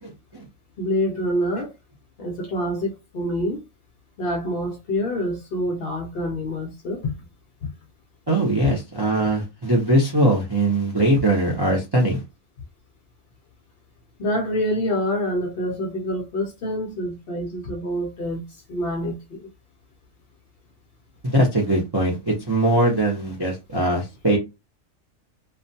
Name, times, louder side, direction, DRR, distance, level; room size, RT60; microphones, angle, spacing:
voice 1, 0.0-0.4 8.3-12.2 21.2-24.4, right 1 dB, 35° right, 0.4 m, -21 dB
voice 2, 0.8-1.7 2.2-3.6 4.2-7.1 14.2-19.4, equal, 60° left, 0.6 m, -26 dB
2.3 x 2.2 x 2.6 m
omnidirectional pair, 1.4 m